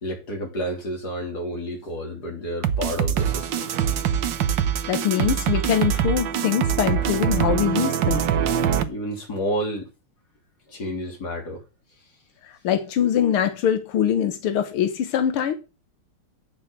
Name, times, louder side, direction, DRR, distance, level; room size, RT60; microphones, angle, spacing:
voice 1, 0.0-3.7 8.8-9.9 10.7-11.6, equal, 50° left, 3.8 m, -30 dB
sound 1, 2.6-8.8, right 9 dB, 65° right, 1.5 m, -23 dB
voice 2, 4.9-8.3 12.6-15.6, left 9 dB, 90° left, 2.0 m, -23 dB
8.9 x 5.7 x 6.5 m
omnidirectional pair, 2.3 m